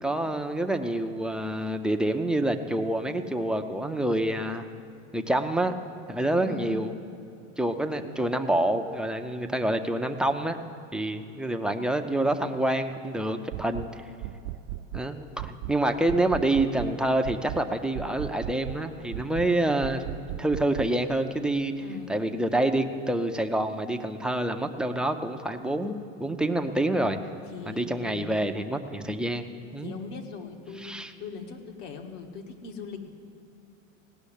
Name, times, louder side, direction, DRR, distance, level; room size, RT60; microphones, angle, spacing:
voice 1, 0.0-4.7 5.1-5.7 6.1-6.9 7.6-10.6 10.9-14.0 14.9-20.0 20.4-21.7 22.1-27.2 27.7-29.9 30.8-31.1, right 1 dB, ahead, 5 dB, 0.3 m, -27 dB
voice 2, 6.3-7.0 21.8-22.1 27.5-28.4 29.8-33.1, left 4 dB, 75° left, 4 dB, 1.8 m, -40 dB
sound 1, 13.5-13.9 14.2-15.1 15.4-15.8 16.1-16.9 17.2-17.6 17.9-18.8 19.1-19.5 19.8-20.9, right 14 dB, 60° right, 0.5 m, -36 dB
17.0 x 6.3 x 9.9 m, 2.7 s
supercardioid pair, 125°, 38 cm